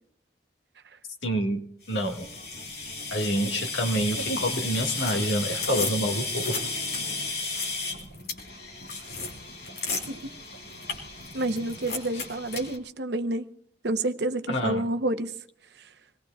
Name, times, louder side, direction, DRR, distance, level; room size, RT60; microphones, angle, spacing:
voice 1, 1.2-1.6 1.9-2.3 3.1-6.6 12.1-12.2 14.5-14.9, equal, 90° left, 1.9 m, -27 dB
sound 1, 1.9-12.8, left 3 dB, 60° left, 3.5 m, -33 dB
Acoustic guitar, 2.2-7.3, right 2 dB, 30° left, 4.9 m, -48 dB
voice 2, 11.3-13.5 13.8-15.4, right 1 dB, 70° right, 0.8 m, -29 dB
26.5 x 19.5 x 2.4 m
head